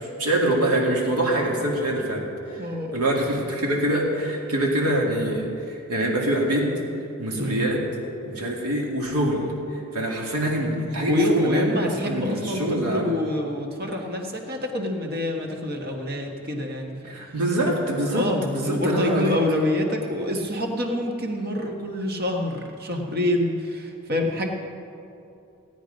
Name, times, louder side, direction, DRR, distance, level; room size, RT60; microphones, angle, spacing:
voice 1, 0.2-6.7 7.2-7.8 8.2-9.5 9.7-13.1 17.0-19.4, right 1 dB, 90° right, -1 dB, 2.5 m, -25 dB
voice 2, 2.6-3.0 7.3-7.6 11.1-17.0 17.6-17.7 18.1-24.5, left 1 dB, 45° right, 2 dB, 1.4 m, -26 dB
16.5 x 9.2 x 5.2 m, 2.7 s
head